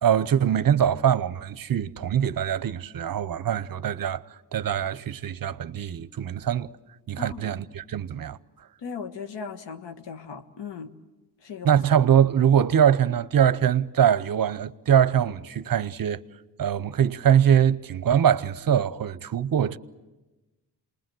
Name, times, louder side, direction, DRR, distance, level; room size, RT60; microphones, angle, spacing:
voice 1, 0.0-4.2 4.5-6.7 7.1-8.4 11.6-16.2 16.6-19.8, right 9 dB, 55° right, 0.8 m, -22 dB
voice 2, 7.2-7.5 8.8-10.9 11.4-11.7, left 6 dB, 85° left, 1.6 m, -37 dB
28.0 x 20.5 x 7.7 m
cardioid pair, 80°, 42 cm